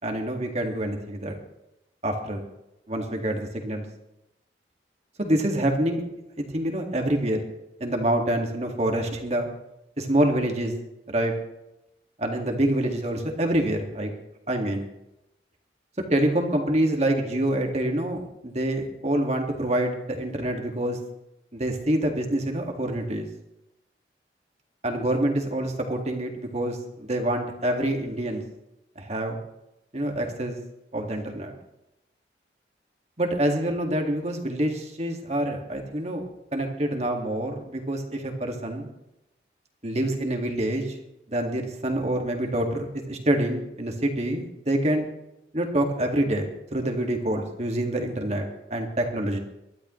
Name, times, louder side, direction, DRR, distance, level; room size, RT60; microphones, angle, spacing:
voice 1, 0.0-1.3 2.0-2.4 2.9-3.9 5.2-6.0 6.4-7.4 7.8-9.5 10.0-10.7 11.1-11.3 12.2-14.1 14.5-14.9 16.1-21.0 21.5-23.3 24.8-28.4 29.0-29.4 29.9-30.6 30.9-31.5 33.2-36.2 36.5-38.9 39.8-41.0 41.3-45.1 45.5-49.4, right 1 dB, 35° right, 3 dB, 2.0 m, -26 dB
23.0 x 12.0 x 3.2 m, 0.90 s
head